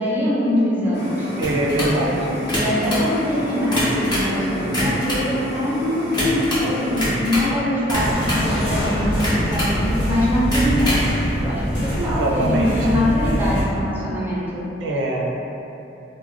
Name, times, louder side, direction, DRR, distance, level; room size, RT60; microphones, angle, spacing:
voice 1, 0.0-1.3 1.7-14.6, equal, 10° right, -6 dB, 0.4 m, -23 dB
sound 1, 0.9-7.1, left 1 dB, 60° left, 0.6 m, -28 dB
sound 2, 1.4-2.0 2.4-3.1 3.5-4.3 4.6-5.3 6.1-6.7 6.9-7.5 7.9-8.5 9.2-9.8 10.4-11.1, equal, 25° left, 0.7 m, -25 dB
voice 2, 1.4-2.4 12.0-13.0 14.8-15.3, right 1 dB, 80° right, -2 dB, 0.4 m, -23 dB
sound 3, 7.9-13.6, equal, 85° left, 1.1 m, -24 dB
2.3 x 2.1 x 3.3 m, 2.8 s
head